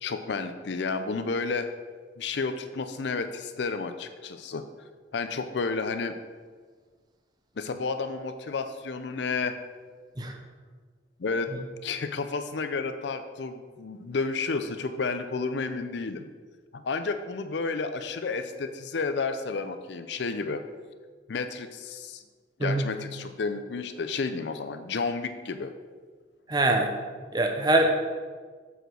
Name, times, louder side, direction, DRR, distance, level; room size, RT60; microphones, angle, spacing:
voice 1, 0.0-1.7 2.2-4.7 5.1-6.2 7.6-9.6 11.2-11.5 11.8-16.3 16.7-20.6 21.3-22.2 22.6-25.7, left 4 dB, 65° left, 9 dB, 0.5 m, -31 dB
voice 2, 26.5-26.9 27.3-27.9, right 2 dB, 20° right, 3 dB, 0.7 m, -23 dB
7.8 x 4.9 x 6.2 m, 1.5 s
head